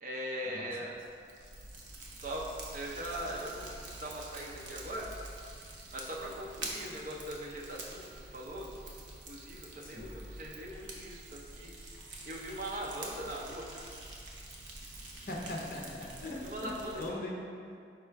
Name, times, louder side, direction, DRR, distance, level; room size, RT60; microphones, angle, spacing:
voice 1, 0.0-0.9 2.0-2.4 2.7-3.6 4.0-5.1 5.9-8.0 8.3-8.7 9.3-11.7 12.2-13.8 16.4-17.3, right 1 dB, 45° right, -2 dB, 0.6 m, -40 dB
Fire, 0.9-17.1, right 2 dB, 85° right, 0.7 m, -47 dB
voice 2, 15.3-16.7 16.9-17.8, left 1 dB, 50° left, -2 dB, 0.6 m, -40 dB
4.9 x 2.3 x 4.5 m, 2.3 s
head